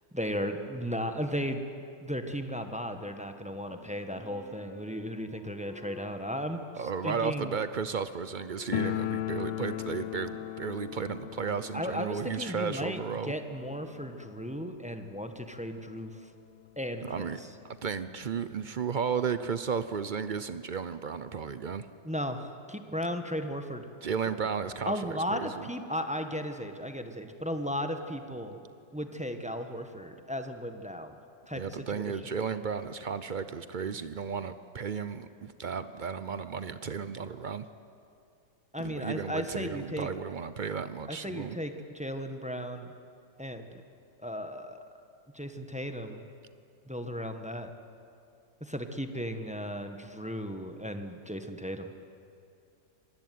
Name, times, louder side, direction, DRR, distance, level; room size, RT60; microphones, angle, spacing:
voice 1, 0.1-1.6 2.0-7.6 11.7-16.3 16.8-17.5 22.0-23.9 24.3-24.4 24.8-28.6 28.9-31.2 31.5-32.1 38.7-40.1 41.1-42.9 43.4-43.8 44.2-44.8 45.3-46.2 46.9-47.7 48.6-51.9, equal, 5° right, 7 dB, 1.2 m, -35 dB
Wind instrument woodwind instrument, 3.6-11.3, left 2 dB, 35° right, 5.0 m, -53 dB
voice 2, 6.8-13.3 17.0-17.4 17.8-21.9 24.0-25.5 31.5-37.6 38.8-41.6, right 6 dB, 70° right, 12 dB, 0.4 m, -34 dB
sound 1, 8.7-15.4 15.7-15.8 16.0-16.1 16.9-17.0 17.3-18.5, left 12 dB, 90° left, 1.6 m, -38 dB
26.0 x 20.5 x 9.4 m, 2.5 s
omnidirectional pair, 1.9 m